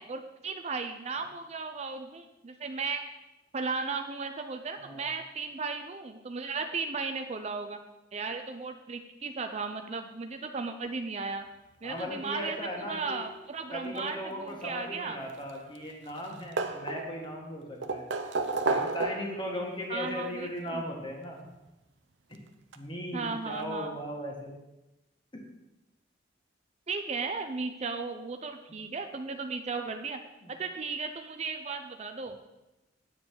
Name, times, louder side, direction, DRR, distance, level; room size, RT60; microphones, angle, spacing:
voice 1, 0.0-3.0 3.5-7.8 8.1-11.4 11.8-15.2 19.9-20.8 23.1-24.0 26.9-30.2 30.5-32.4, right 4 dB, 35° right, 6 dB, 0.5 m, -35 dB
voice 2, 4.8-5.1 11.8-13.2 13.7-18.1 18.7-21.4 22.3-22.4 22.7-24.6 25.3-25.4 30.4-30.5, left 1 dB, 25° left, 0 dB, 1.7 m, -37 dB
sound 1, 15.2-15.9 16.2-17.3 17.8-19.5 20.7-20.8 22.3-22.4 22.7-22.8, right 3 dB, 85° right, 0.7 m, -31 dB
8.9 x 7.6 x 4.7 m, 1.0 s
head